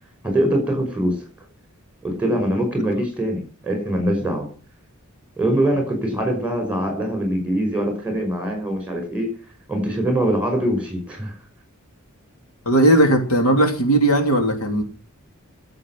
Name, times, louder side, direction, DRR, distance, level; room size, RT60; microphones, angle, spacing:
voice 1, 0.2-1.2 2.0-4.5 5.4-9.3 9.7-11.3, right 1 dB, 5° right, 4 dB, 5.8 m, -23 dB
voice 2, 12.6-14.8, right 1 dB, 80° left, 4 dB, 3.3 m, -17 dB
15.0 x 7.9 x 7.5 m, 0.38 s
head